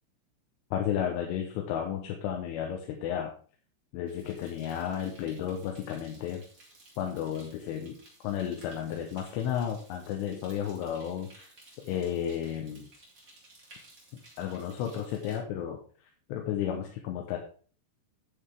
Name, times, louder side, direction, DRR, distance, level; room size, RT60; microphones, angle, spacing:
voice 1, 0.7-3.3 3.9-6.4 7.0-8.0 8.2-11.5 11.8-12.9 14.4-15.8 16.3-17.4, left 9 dB, 85° left, 2 dB, 3.5 m, -33 dB
sound 1, 4.1-15.4, right 1 dB, 25° right, 1.9 m, -56 dB
9.9 x 8.0 x 3.6 m, 0.43 s
omnidirectional pair, 5.5 m